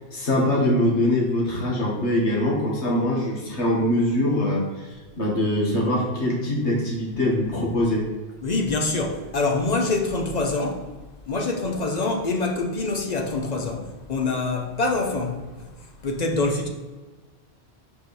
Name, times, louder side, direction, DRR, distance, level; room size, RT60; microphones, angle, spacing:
voice 1, 0.1-4.9 5.2-8.1, left 1 dB, 80° left, 1.8 m, -23 dB
voice 2, 8.4-10.9 11.3-15.6 16.0-16.7, left 3 dB, 45° left, 0.6 m, -25 dB
4.9 x 4.8 x 4.1 m
omnidirectional pair, 1.1 m